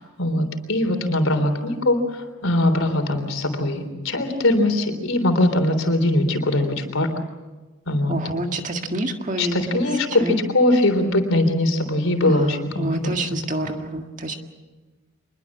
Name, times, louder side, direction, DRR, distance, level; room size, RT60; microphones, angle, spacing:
voice 1, 0.0-7.1 7.9-8.2 9.4-13.1, left 1 dB, 85° left, 7 dB, 3.6 m, -21 dB
voice 2, 8.1-9.8 10.2-10.4 12.8-14.4, right 1 dB, 40° right, 4 dB, 1.8 m, -27 dB
26.0 x 21.5 x 7.3 m, 1.2 s
head